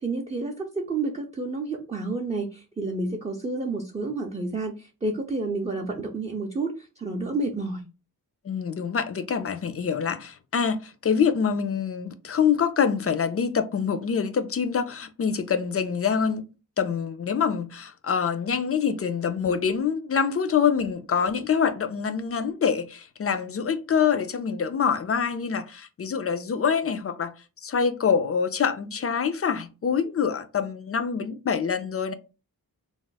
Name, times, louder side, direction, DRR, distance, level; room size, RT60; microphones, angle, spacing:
voice 1, 0.0-7.8, right 3 dB, 20° right, 0.5 m, -30 dB
voice 2, 8.4-16.4 16.8-27.3 27.6-32.1, left 6 dB, 40° left, 0.4 m, -25 dB
2.4 x 2.0 x 3.8 m
cardioid pair, 65°, 38 cm